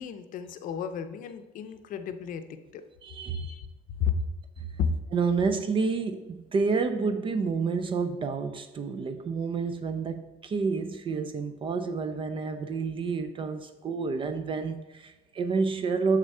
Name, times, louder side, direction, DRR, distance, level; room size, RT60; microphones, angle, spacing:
voice 1, 0.0-2.8 3.3-3.7 4.0-4.2 4.8-4.9, left 7 dB, 55° left, 9 dB, 0.6 m, -32 dB
voice 2, 3.0-3.6 5.1-16.2, right 4 dB, 30° right, 9 dB, 0.4 m, -29 dB
6.7 x 3.7 x 5.4 m, 1.1 s
cardioid pair, 125°, 17 cm